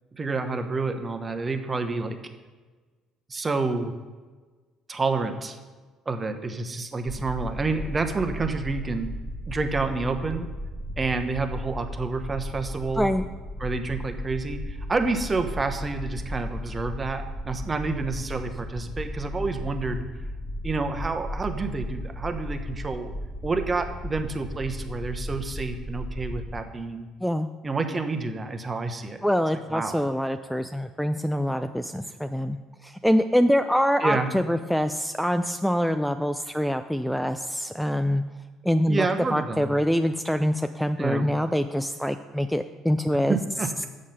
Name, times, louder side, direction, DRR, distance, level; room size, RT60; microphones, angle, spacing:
voice 1, 0.1-2.2 3.3-3.9 4.9-5.6 6.1-9.1 9.5-10.5 11.0-13.1 13.6-20.1 20.6-23.1 23.4-27.1 27.6-29.2 29.7-30.0 34.0-34.3 38.9-39.7 41.0-41.3 43.3-43.9, right 3 dB, 30° right, 7 dB, 1.0 m, -29 dB
sound 1, 7.1-26.6, left 1 dB, 15° left, 1.5 m, -35 dB
voice 2, 29.2-32.6 32.8-38.2 38.6-43.4, equal, ahead, 9 dB, 0.4 m, -25 dB
7.3 x 6.5 x 5.6 m, 1.4 s
hypercardioid pair, 60°, 0 cm